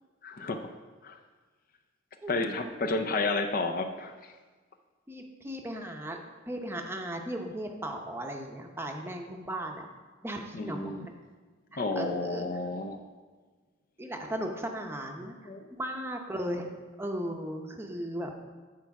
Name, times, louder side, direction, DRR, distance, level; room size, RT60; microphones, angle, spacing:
voice 1, 0.2-0.7 1.0-1.2 2.3-4.3 10.5-11.1 11.8-13.0 15.4-15.7, left 3 dB, 45° left, 7 dB, 0.5 m, -31 dB
voice 2, 2.2-2.5 5.1-6.2 6.5-9.9 10.2-11.1 11.7-12.5 14.0-15.4 15.8-16.7 17.0-18.3, right 1 dB, 10° right, 3 dB, 0.7 m, -36 dB
9.4 x 4.5 x 5.8 m, 1.4 s
head